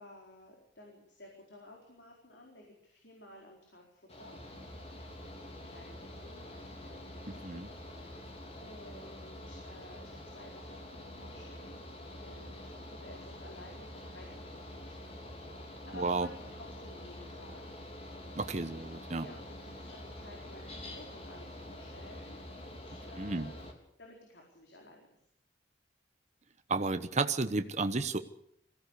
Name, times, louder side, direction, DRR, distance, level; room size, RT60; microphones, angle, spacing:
voice 1, 0.0-4.4 5.6-7.6 8.6-11.8 12.1-15.0 15.3-17.7 19.1-23.6 24.0-25.0, left 1 dB, 70° left, 0 dB, 4.5 m, -54 dB
Mechanical fan, 4.1-23.7, left 1 dB, 35° left, 3.6 m, -46 dB
voice 2, 7.3-7.7 15.9-16.3 18.3-19.3 23.2-23.5 26.7-28.2, right 3 dB, 40° right, 9 dB, 1.0 m, -32 dB
22.0 x 16.0 x 8.3 m, 0.73 s
head